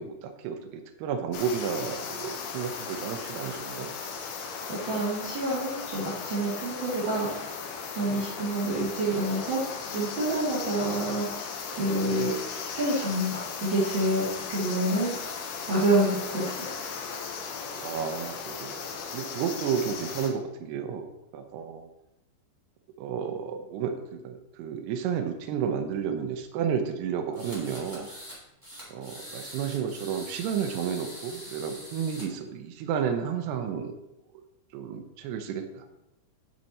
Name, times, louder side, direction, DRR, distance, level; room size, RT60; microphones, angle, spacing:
voice 1, 0.0-3.9 17.8-18.9 19.1-21.1 21.3-21.9 23.0-28.1 28.9-33.9 34.3-34.4 34.7-35.9, right 7 dB, 85° right, 6 dB, 2.3 m, -32 dB
sound 1, 1.3-20.3, left 5 dB, 80° left, 2.4 m, -37 dB
voice 2, 4.7-7.5 7.9-11.3 11.8-12.3 12.7-15.1 15.7-16.7, right 1 dB, 50° right, -10 dB, 1.4 m, -27 dB
sound 2, 27.3-28.4 28.6-32.2, equal, 10° right, 1.4 m, -43 dB
9.3 x 4.6 x 4.1 m, 0.90 s
omnidirectional pair, 5.6 m